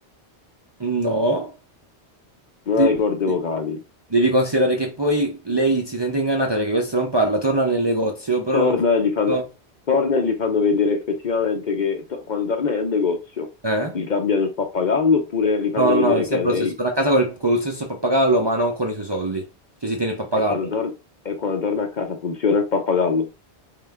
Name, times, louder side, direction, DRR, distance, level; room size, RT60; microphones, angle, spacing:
voice 1, 0.8-1.5 2.8-2.9 4.1-8.7 9.3-9.4 13.6-14.0 15.8-19.4 19.8-20.7, right 1 dB, 30° right, 0.5 m, -21 dB
voice 2, 2.7-3.8 8.5-9.4 9.9-13.5 13.9-16.7 20.5-20.9 21.2-23.3, left 5 dB, 50° left, 0.7 m, -22 dB
3.7 x 3.2 x 3.5 m
omnidirectional pair, 1.1 m